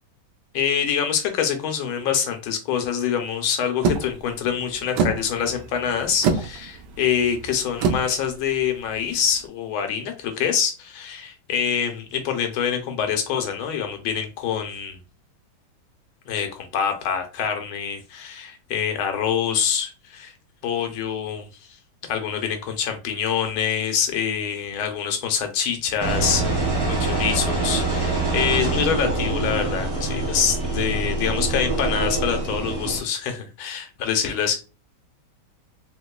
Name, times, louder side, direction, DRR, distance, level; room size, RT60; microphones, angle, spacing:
voice 1, 0.5-15.0 16.3-20.3 20.6-21.5 22.1-34.6, left 8 dB, 85° left, 1.5 m, -25 dB
sound 1, 3.8-9.4, right 5 dB, 70° right, 1.0 m, -27 dB
Engine, 26.0-33.0, right 3 dB, 20° right, 0.9 m, -25 dB
3.9 x 2.9 x 2.2 m
omnidirectional pair, 2.2 m